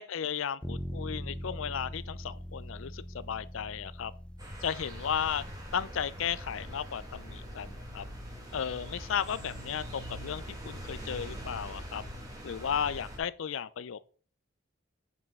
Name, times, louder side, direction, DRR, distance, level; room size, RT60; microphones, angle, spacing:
voice 1, 0.0-4.1 4.6-5.4 5.7-8.0 8.5-12.0 12.4-14.0, left 8 dB, 75° left, 0.4 m, -34 dB
sound 1, 0.6-10.4, equal, 5° left, 0.5 m, -44 dB
sound 2, 4.4-13.2, equal, 20° right, 1.7 m, -43 dB
8.0 x 5.1 x 3.6 m
head